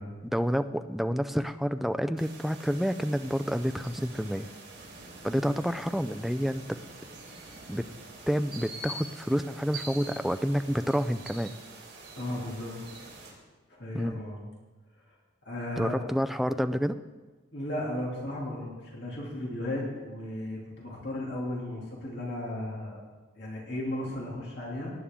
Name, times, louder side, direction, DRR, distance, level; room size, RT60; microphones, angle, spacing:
voice 1, 0.3-4.5 5.2-6.8 7.7-7.9 8.3-11.5 13.9-14.2 15.8-17.0, equal, ahead, 10 dB, 0.3 m, -29 dB
sound 1, 2.2-13.3, right 2 dB, 55° right, 4.1 m, -45 dB
voice 2, 12.2-12.8 13.1-13.4 13.7-14.4 15.4-16.0 17.5-23.0 23.4-24.9, left 1 dB, 55° left, -3 dB, 2.7 m, -35 dB
18.5 x 9.9 x 3.7 m, 1.3 s
head